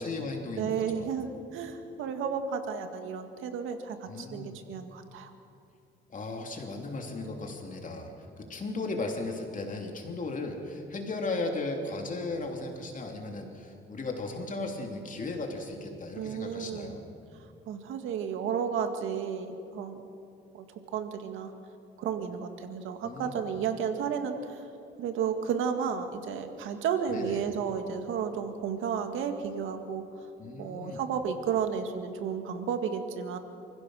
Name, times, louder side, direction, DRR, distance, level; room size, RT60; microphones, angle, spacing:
voice 1, 0.0-1.2 4.1-4.6 6.1-17.0 23.0-23.4 27.1-27.4 30.4-31.0, left 3 dB, 40° left, 2 dB, 3.0 m, -36 dB
voice 2, 0.6-5.3 16.2-17.0 17.7-20.0 20.5-21.5 22.0-24.6 25.0-30.0 30.6-33.4, right 7 dB, 90° right, 6 dB, 1.9 m, -32 dB
28.0 x 15.5 x 6.3 m, 2.5 s
cardioid pair, 90°, 20 cm